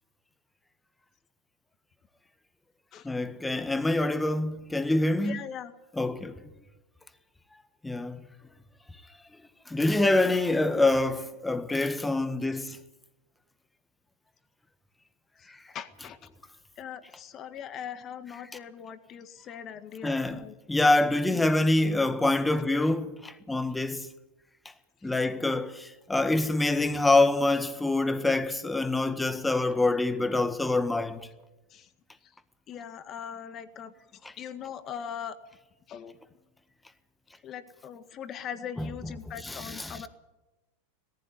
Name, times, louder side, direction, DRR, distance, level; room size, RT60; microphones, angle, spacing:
voice 1, 3.0-5.4 6.0-6.4 7.8-8.3 9.7-12.8 15.5-15.6 20.0-24.1 25.0-31.3 34.2-34.3 38.8-38.9 39.4-40.0, left 2 dB, 10° left, 1.6 m, -26 dB
voice 2, 5.2-5.7 15.4-16.2 16.8-20.5 25.0-25.3 31.7-31.9 32.2-32.3 32.7-33.9 34.4-35.4 35.9-36.2 37.4-40.1, left 8 dB, 35° left, 1.8 m, -41 dB
18.0 x 15.5 x 9.8 m
hypercardioid pair, 105°, 0 cm